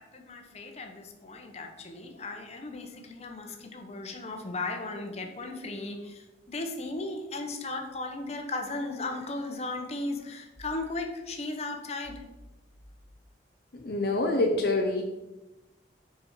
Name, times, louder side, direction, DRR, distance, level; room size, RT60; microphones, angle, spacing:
voice 1, 0.1-6.2 6.5-12.2, left 2 dB, 35° left, 3 dB, 1.0 m, -36 dB
voice 2, 13.7-15.0, left 2 dB, 60° left, 2 dB, 0.8 m, -26 dB
6.8 x 5.4 x 4.4 m, 1.0 s
head